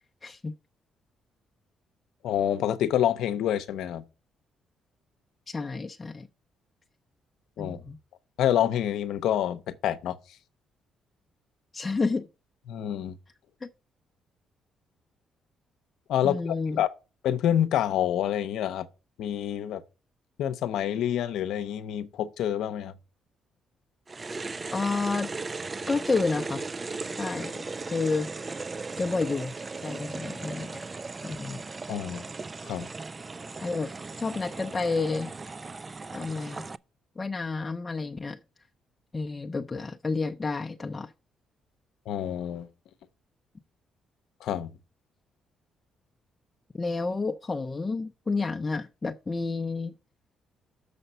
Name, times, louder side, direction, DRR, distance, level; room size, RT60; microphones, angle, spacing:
voice 1, 0.2-0.5 5.5-6.3 7.6-8.0 11.7-12.3 13.6-13.7 16.2-16.8 24.7-25.3 25.9-26.7 27.2-28.5 29.0-30.8 31.2-31.6 33.6-35.3 36.1-36.7 37.2-38.4 39.1-41.1 46.7-49.9, left 3 dB, 25° left, 0.5 m, -30 dB
voice 2, 2.2-4.0 7.6-7.8 8.4-10.2 12.7-13.2 16.1-16.9 17.2-18.9 19.2-19.8 20.4-22.9 31.9-32.3 32.6-32.9 42.1-42.7 44.4-44.7, left 10 dB, 80° left, 0.6 m, -27 dB
sound 1, 24.1-36.8, right 3 dB, 30° right, 0.3 m, -37 dB
6.7 x 5.1 x 5.5 m
cardioid pair, 90°, 0 cm